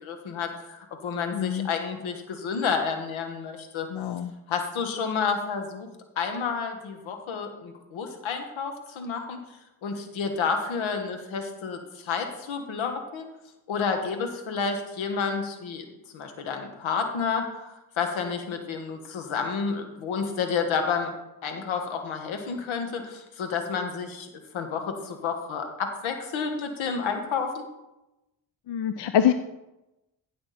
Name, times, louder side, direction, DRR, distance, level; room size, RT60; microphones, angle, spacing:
voice 1, 0.0-3.9 4.5-5.9 6.2-9.4 9.8-13.2 13.7-15.8 16.1-21.1 21.4-24.3 24.5-27.6, left 5 dB, 85° left, 5 dB, 1.5 m, -30 dB
voice 2, 1.3-1.7 3.9-4.3 28.7-29.3, left 10 dB, 65° left, 9 dB, 0.7 m, -24 dB
15.5 x 6.1 x 4.2 m, 0.97 s
cardioid pair, 60°, 46 cm